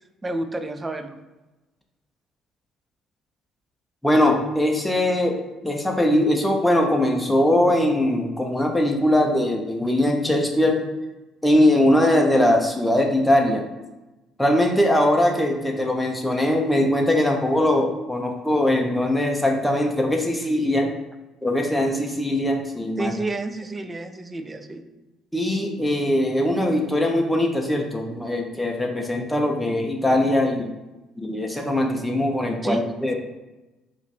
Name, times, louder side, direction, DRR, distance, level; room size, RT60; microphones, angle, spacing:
voice 1, 0.2-1.2 23.0-24.9 32.6-32.8, right 2 dB, 25° right, 8 dB, 0.5 m, -30 dB
voice 2, 4.0-10.8 11.4-13.7 14.4-20.9 21.4-23.1 25.3-30.7 31.2-33.1, left 1 dB, 5° left, 1 dB, 0.7 m, -21 dB
4.9 x 2.6 x 3.3 m, 1.1 s
figure-of-eight pair, 50°, 0 cm